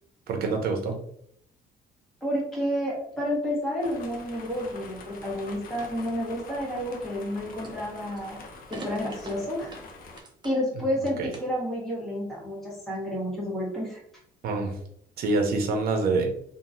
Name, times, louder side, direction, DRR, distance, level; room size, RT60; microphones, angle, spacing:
voice 1, 0.3-1.0 11.2-11.3 14.4-14.8 15.2-16.3, right 3 dB, 65° right, 3 dB, 0.8 m, -26 dB
voice 2, 2.2-8.4 8.7-9.8 10.4-14.0, equal, ahead, -6 dB, 1.4 m, -30 dB
sound 1, 3.1-3.7 4.2-5.8 6.1-6.6 7.1-7.4 7.6-8.2 8.7-10.6 10.9-11.7, right 3 dB, 25° right, 0.7 m, -44 dB
sound 2, 3.8-10.2, left 3 dB, 55° left, 0.6 m, -45 dB
2.9 x 2.6 x 2.6 m, 0.67 s
cardioid pair, 110°, 17 cm